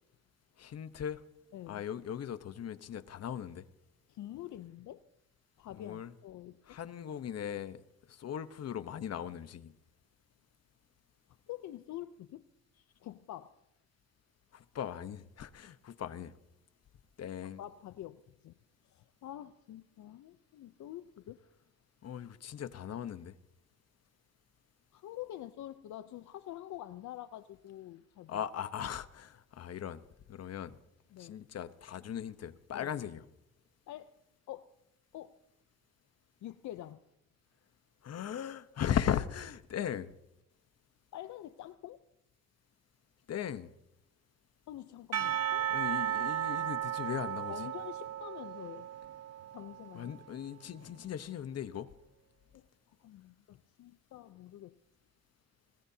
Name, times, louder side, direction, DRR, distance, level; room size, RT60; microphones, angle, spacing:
voice 1, 0.6-1.2 1.7-3.7 5.7-6.1 6.7-7.8 8.1-9.7 14.5-16.3 17.2-17.6 22.0-23.4 28.3-30.0 30.3-30.8 31.2-33.2 38.0-40.1 43.3-43.7 45.7-47.7 49.9-51.9, left 9 dB, 55° left, 1.1 m, -38 dB
voice 2, 4.1-5.0 5.6-6.8 11.5-12.4 13.0-13.5 17.6-18.6 18.8-21.4 24.9-28.4 31.1-31.4 32.7-32.9 33.9-34.1 34.5-34.7 35.1-35.4 36.4-37.0 41.1-42.0 44.7-45.7 47.5-48.9 49.5-50.1 52.5-52.7 53.0-54.8, left 13 dB, 70° left, 0.7 m, -46 dB
Percussion / Church bell, 45.1-50.2, right 10 dB, 55° right, 0.9 m, -35 dB
25.5 x 19.0 x 2.8 m
cardioid pair, 90°, 30 cm